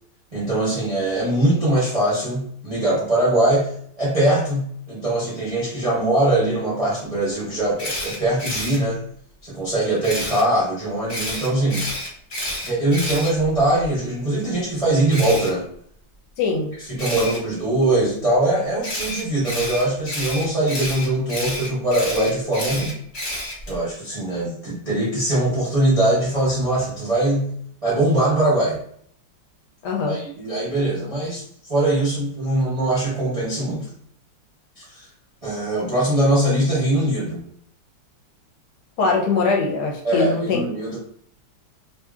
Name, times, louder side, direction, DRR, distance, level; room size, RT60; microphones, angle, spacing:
voice 1, 0.3-3.7 4.0-9.0 9.4-11.8 12.6-15.6 16.8-22.9 23.7-27.5 27.8-28.8 30.0-31.4 31.7-33.9 34.8-35.1 35.4-37.4 40.0-41.0, right 1 dB, 35° right, -9 dB, 0.5 m, -21 dB
Camera, 7.8-8.8 10.0-10.4 11.1-13.9 15.1-15.5 17.0-17.4 18.8-23.8, left 1 dB, 35° left, 1.1 m, -29 dB
voice 2, 16.4-16.7 29.8-30.2 39.0-40.6, left 4 dB, 70° left, 0 dB, 1.1 m, -22 dB
2.8 x 2.7 x 2.3 m, 0.63 s
omnidirectional pair, 2.0 m